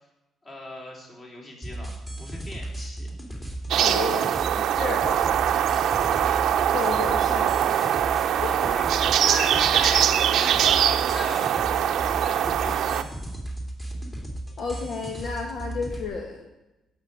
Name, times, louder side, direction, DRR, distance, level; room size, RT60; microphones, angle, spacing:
voice 1, 0.4-1.9 2.2-3.1 3.7-4.1 5.5-5.8 8.8-13.4, left 2 dB, 30° left, -1 dB, 4.1 m, -38 dB
sound 1, 1.6-16.0, right 1 dB, 15° left, 2.5 m, -36 dB
sound 2, 3.7-13.0, right 10 dB, 70° right, 0.7 m, -22 dB
voice 2, 3.8-5.3 6.7-7.9 8.4-8.7 14.6-16.4, left 4 dB, 60° left, 1 dB, 1.8 m, -32 dB
16.0 x 6.1 x 7.2 m, 0.99 s
cardioid pair, 135°, 0 cm